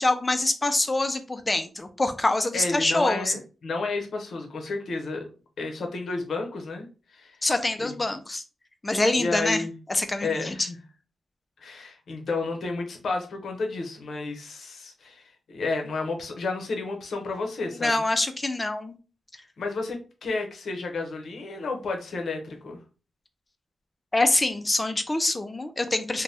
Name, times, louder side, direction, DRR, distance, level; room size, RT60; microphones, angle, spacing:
voice 1, 0.0-3.3 7.4-8.4 8.8-9.6 9.9-10.7 17.8-18.9 24.1-26.2, left 2 dB, 20° left, 9 dB, 0.3 m, -25 dB
voice 2, 2.5-5.3 5.6-7.4 7.8-8.0 9.1-9.8 10.2-10.8 11.6-17.9 19.6-22.8, left 3 dB, 65° left, 4 dB, 0.7 m, -31 dB
2.6 x 2.1 x 3.3 m, 0.34 s
wide cardioid pair, 155°, 0 cm